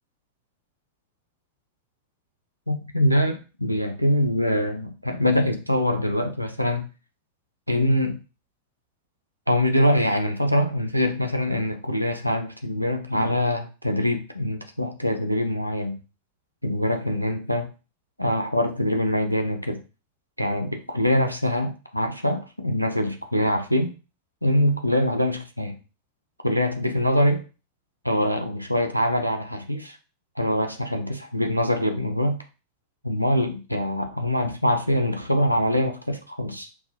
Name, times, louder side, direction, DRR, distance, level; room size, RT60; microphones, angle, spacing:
voice 1, 2.7-6.9 7.7-8.2 9.5-16.0 16.6-17.7 18.2-19.8 20.4-23.9 24.4-25.8 26.4-27.4 28.0-30.0 30.4-32.4 33.0-36.7, equal, 90° right, 4 dB, 0.6 m, -24 dB
5.5 x 2.5 x 2.8 m, 0.32 s
figure-of-eight pair, 90°, 0 cm